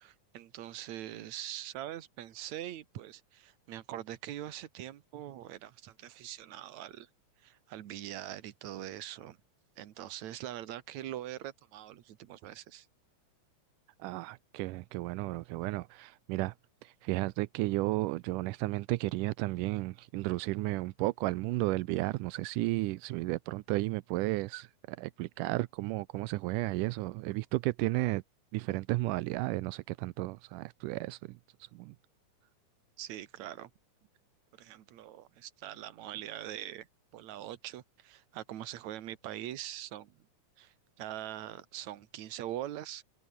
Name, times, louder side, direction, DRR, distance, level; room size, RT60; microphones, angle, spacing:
voice 1, 0.0-7.1 7.4-9.4 9.8-12.9 33.0-33.7 34.5-36.9 37.1-40.2 40.6-43.0, right 12 dB, 65° right, 2.6 m, -43 dB
voice 2, 14.0-16.5 16.8-28.2 28.5-32.0, right 20 dB, 85° right, 2.2 m, -33 dB
omnidirectional pair, 3.6 m